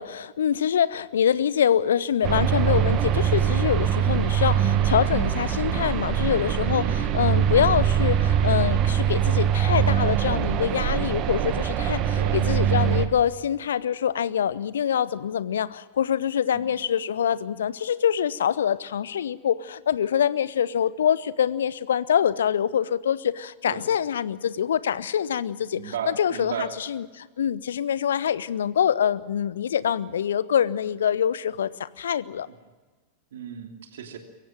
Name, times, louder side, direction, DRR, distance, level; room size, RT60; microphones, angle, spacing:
voice 1, 0.0-32.5, left 9 dB, 65° left, 19 dB, 0.7 m, -25 dB
sound 1, 2.2-13.1, right 9 dB, 35° right, 1.6 m, -23 dB
voice 2, 6.7-7.1 12.2-12.4 16.5-16.7 23.6-23.9 25.8-26.8 33.3-34.2, right 7 dB, 60° right, 5 dB, 2.9 m, -34 dB
23.0 x 15.5 x 9.1 m, 1.3 s
figure-of-eight pair, 90°, 0 cm